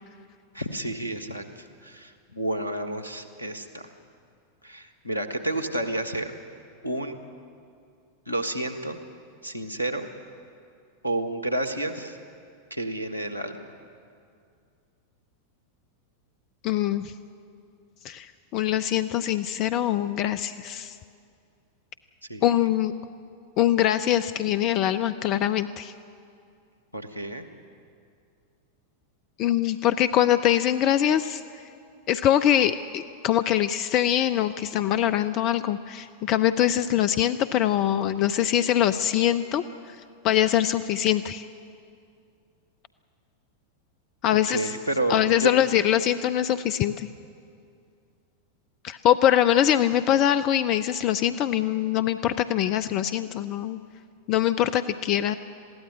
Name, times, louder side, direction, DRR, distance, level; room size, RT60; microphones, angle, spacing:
voice 1, 0.5-3.8 4.6-6.3 6.8-7.2 8.3-9.0 9.4-10.1 11.0-12.2 12.7-13.6 22.3-22.7 26.9-27.4 44.5-45.6, right 1 dB, 85° left, 5 dB, 1.5 m, -30 dB
voice 2, 16.6-17.1 18.0-21.0 22.4-22.9 23.6-25.9 29.4-31.4 32.1-39.6 40.2-41.5 44.2-44.7 45.1-47.1 48.8-53.8 54.3-55.3, left 11 dB, 40° left, 11 dB, 0.6 m, -23 dB
21.0 x 15.5 x 9.9 m, 2.4 s
figure-of-eight pair, 90°, 0 cm